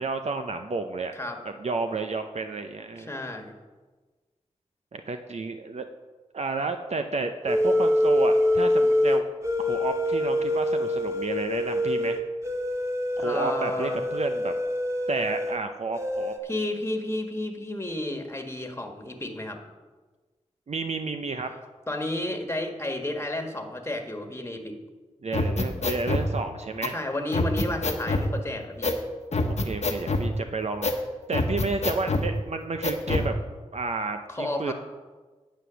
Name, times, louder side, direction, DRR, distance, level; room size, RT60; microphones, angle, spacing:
voice 1, 0.0-1.1 1.6-3.1 4.9-5.8 6.3-9.2 9.6-12.2 13.2-14.5 15.1-16.3 20.7-21.5 25.2-27.0 29.5-30.9 31.3-33.4 33.7-34.7, right 3 dB, 60° right, 6 dB, 0.7 m, -31 dB
voice 2, 2.9-3.5 13.2-14.0 16.4-19.6 21.9-24.7 26.9-28.9 34.3-34.7, left 1 dB, 20° left, 3 dB, 1.5 m, -32 dB
sound 1, 7.5-15.6 16.0-16.4, left 1 dB, 25° right, 1.7 m, -25 dB
sound 2, 25.3-26.3 26.8-26.9 27.3-28.3 28.8-29.0 29.3-30.3 30.8-31.0 31.3-32.3 32.8-33.3, left 2 dB, 65° left, 1.2 m, -25 dB
9.7 x 7.9 x 6.2 m, 1.3 s
cardioid pair, 50°, 12 cm